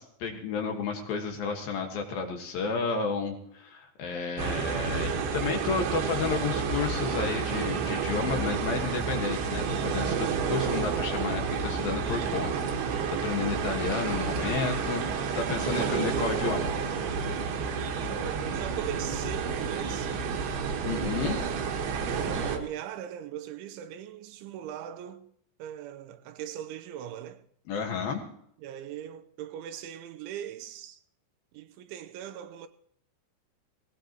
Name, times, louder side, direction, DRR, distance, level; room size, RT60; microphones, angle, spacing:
voice 1, 0.0-16.7 20.8-21.4 27.7-28.2, left 5 dB, 60° left, 3.0 m, -32 dB
sound 1, 4.4-22.6, right 5 dB, 65° right, 3.4 m, -30 dB
voice 2, 17.9-20.2 20.9-25.3 25.6-27.4 28.6-31.0 31.5-32.7, right 10 dB, 85° right, 3.3 m, -40 dB
18.5 x 18.5 x 3.0 m
omnidirectional pair, 5.4 m